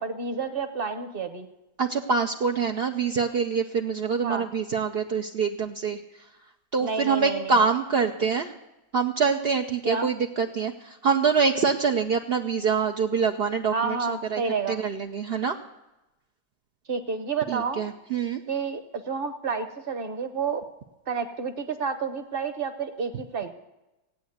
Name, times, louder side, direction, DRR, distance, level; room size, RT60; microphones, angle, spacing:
voice 1, 0.0-1.5 4.2-4.4 6.8-7.6 9.8-10.1 13.7-14.8 16.9-17.8 18.5-18.8 19.1-20.6 21.1-23.5, right 5 dB, 35° right, 9 dB, 1.0 m, -30 dB
voice 2, 1.8-6.0 6.7-8.5 8.9-14.4 14.7-15.6 17.5-18.4, right 5 dB, 65° right, 3 dB, 0.5 m, -25 dB
17.0 x 9.2 x 7.9 m, 0.99 s
omnidirectional pair, 2.0 m